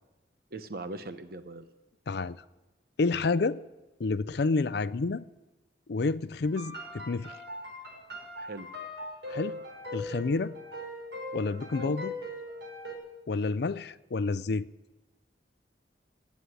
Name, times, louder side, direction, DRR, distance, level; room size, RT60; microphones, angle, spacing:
voice 1, 0.5-1.7 8.4-8.7 11.8-12.0, right 2 dB, 55° right, 0.9 m, -40 dB
voice 2, 2.1-2.4 3.0-3.6 4.0-5.2 5.9-7.3 9.3-9.6 9.9-10.5 11.3-12.1 13.3-14.7, left 3 dB, 60° left, 0.5 m, -29 dB
sound 1, 6.4-13.0, left 1 dB, 75° right, 5.2 m, -40 dB
18.0 x 8.3 x 9.6 m
head